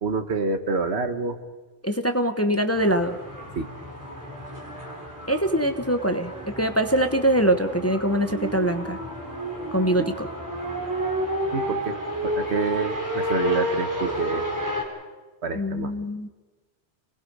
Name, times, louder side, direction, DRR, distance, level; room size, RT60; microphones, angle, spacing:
voice 1, 0.0-1.4 3.6-3.7 10.0-10.1 11.5-12.0 12.2-14.5 15.4-15.9, right 4 dB, 70° right, 8 dB, 1.6 m, -27 dB
voice 2, 1.8-3.2 5.3-9.0 9.7-10.3 15.5-16.3, right 1 dB, 15° left, 7 dB, 0.9 m, -23 dB
sound 1, 2.7-14.8, equal, 15° right, 3.5 m, -31 dB
28.5 x 20.0 x 5.4 m, 1.2 s
omnidirectional pair, 1.1 m